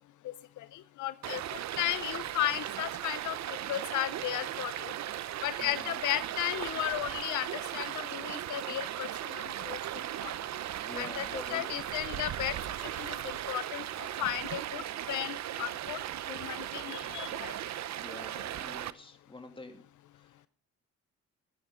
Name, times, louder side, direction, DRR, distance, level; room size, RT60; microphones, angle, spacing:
voice 1, 0.6-4.9 5.4-9.8 10.2-10.3 11.0-11.2 11.5-12.5 12.8-13.2 13.5-13.8 14.2-16.0 16.3-17.5, left 13 dB, 75° left, 15 dB, 0.7 m, -35 dB
Stream, 1.2-18.9, right 12 dB, 65° right, 0.8 m, -37 dB
voice 2, 5.6-6.0 10.8-11.7 18.0-20.5, left 2 dB, 15° left, 5 dB, 2.7 m, -46 dB
14.0 x 12.5 x 3.8 m, 0.41 s
cardioid pair, 90°, 30 cm